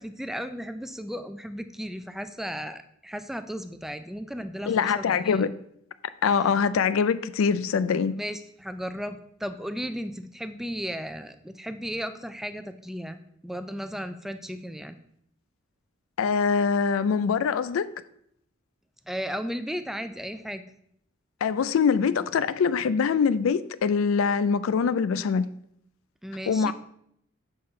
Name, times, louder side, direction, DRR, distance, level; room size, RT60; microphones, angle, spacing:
voice 1, 0.0-5.4 8.2-15.0 19.1-20.6 26.2-26.7, equal, ahead, 0.4 m, -35 dB
voice 2, 4.7-5.5 6.2-8.1 16.2-17.9 21.4-25.5 26.5-26.7, left 6 dB, 80° left, 0.4 m, -23 dB
6.6 x 5.5 x 4.4 m
head